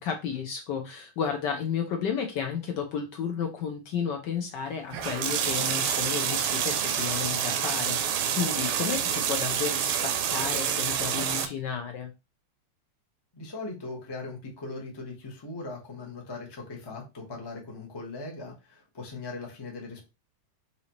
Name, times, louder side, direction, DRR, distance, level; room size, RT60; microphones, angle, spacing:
voice 1, 0.0-12.1, left 7 dB, 75° left, 4 dB, 1.0 m, -32 dB
sound 1, 4.9-11.5, right 8 dB, 80° right, 1.4 m, -28 dB
voice 2, 13.3-20.0, left 3 dB, 40° left, 0 dB, 0.3 m, -39 dB
4.9 x 2.8 x 2.9 m, 0.27 s
omnidirectional pair, 2.4 m